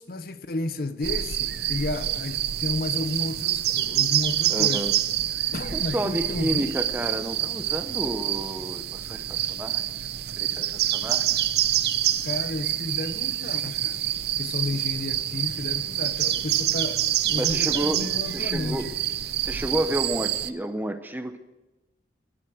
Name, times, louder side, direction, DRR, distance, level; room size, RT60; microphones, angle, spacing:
voice 1, 0.0-4.9 5.5-6.8 12.2-14.0 14.4-19.0, left 2 dB, 55° left, 0.7 m, -32 dB
sound 1, 1.0-20.5, right 12 dB, 65° right, 0.6 m, -27 dB
voice 2, 4.5-4.9 5.7-10.1 10.4-11.4 17.3-18.9 19.4-21.4, right 1 dB, 10° right, 0.6 m, -31 dB
12.5 x 11.0 x 6.3 m
head